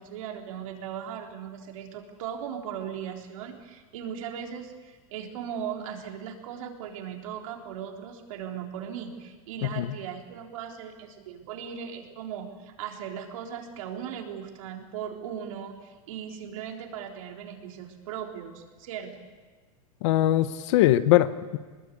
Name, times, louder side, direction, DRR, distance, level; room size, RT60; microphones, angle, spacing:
voice 1, 0.0-19.2, right 8 dB, 60° right, 2 dB, 3.7 m, -38 dB
voice 2, 9.6-9.9 20.0-21.6, left 14 dB, 50° left, 13 dB, 1.1 m, -22 dB
24.0 x 20.5 x 8.4 m, 1.4 s
supercardioid pair, 165°, 19 cm